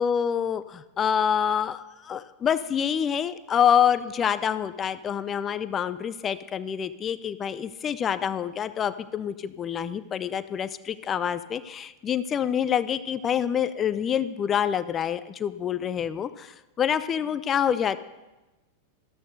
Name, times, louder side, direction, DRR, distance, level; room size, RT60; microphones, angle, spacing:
voice 1, 0.0-18.0, left 8 dB, 25° left, 14 dB, 0.4 m, -26 dB
13.5 x 13.0 x 2.7 m, 1.1 s
figure-of-eight pair, 90°, 0 cm